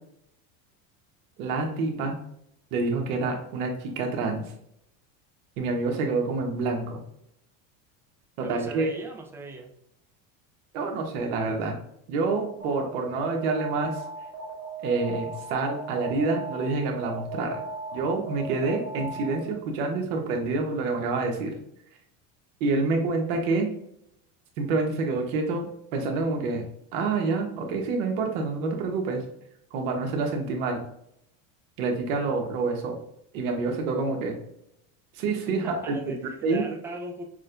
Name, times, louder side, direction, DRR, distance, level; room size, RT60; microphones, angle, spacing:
voice 1, 1.4-2.2 2.7-4.4 5.6-7.0 8.4-8.9 10.7-11.8 12.1-14.0 14.8-17.6 17.9-21.5 22.6-23.7 24.6-25.7 25.9-26.7 26.9-29.2 29.7-30.8 31.8-33.0 33.3-34.4 35.1-35.9 36.4-36.6, right 3 dB, 80° right, 2 dB, 1.1 m, -27 dB
voice 2, 8.4-9.7 35.5-37.2, right 2 dB, 5° right, 1 dB, 0.4 m, -39 dB
Alarm, 12.6-19.7, right 3 dB, 45° right, 1.3 m, -37 dB
6.3 x 2.2 x 2.5 m, 0.73 s
supercardioid pair, 135°, 40 cm